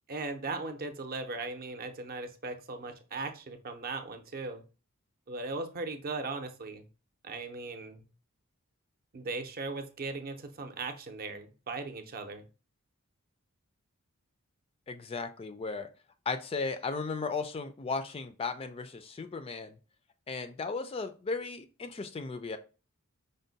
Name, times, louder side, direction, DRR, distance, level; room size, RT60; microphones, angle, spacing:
voice 1, 0.1-4.6 5.3-6.8 7.2-8.1 9.1-12.5, right 3 dB, 45° right, 7 dB, 0.6 m, -38 dB
voice 2, 14.9-15.9 16.3-19.8 20.3-22.6, left 4 dB, 25° left, 9 dB, 0.3 m, -36 dB
5.2 x 2.1 x 3.9 m, 0.34 s
head